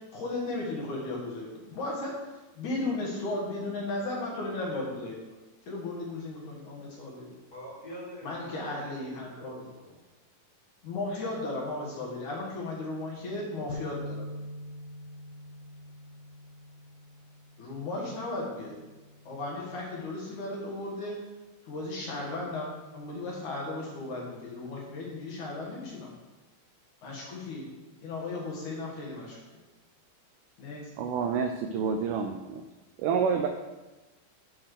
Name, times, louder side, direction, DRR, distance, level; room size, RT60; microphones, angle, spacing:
voice 1, 0.1-2.1 2.6-5.2 5.7-7.3 8.2-9.6 10.8-14.2 17.6-18.8 19.2-21.2 21.6-26.1 27.0-27.7 28.0-29.4 30.6-30.8, left 2 dB, 60° left, -3 dB, 2.8 m, -35 dB
voice 2, 7.5-10.0, equal, 25° left, -7 dB, 2.3 m, -45 dB
sound 1, 13.7-19.9, left 2 dB, 80° left, 2.5 m, -44 dB
voice 3, 31.0-32.6 33.0-33.5, right 6 dB, 85° right, 5 dB, 1.9 m, -28 dB
7.6 x 4.4 x 6.5 m, 1.1 s
omnidirectional pair, 4.2 m